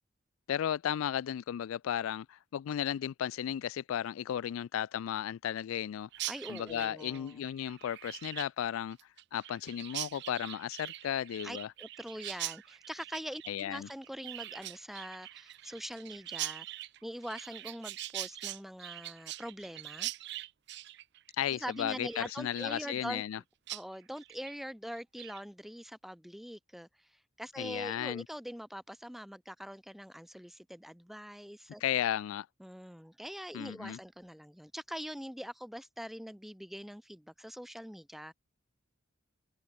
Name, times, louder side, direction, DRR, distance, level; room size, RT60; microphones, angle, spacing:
voice 1, 0.5-6.1 6.5-11.7 13.5-13.9 21.3-23.4 27.6-28.2 31.8-32.5 33.5-34.0, left 10 dB, 90° left, 0.3 m, -34 dB
Chirp tweet, 6.1-23.4 23.7-23.8 24.2-24.6 24.9-25.4, right 15 dB, 60° right, 0.6 m, -43 dB
voice 2, 6.2-7.3 11.4-16.7 17.0-20.1 21.6-23.2 23.7-27.1 27.4-31.8 32.6-38.3, equal, ahead, 1.2 m, -43 dB
open air
head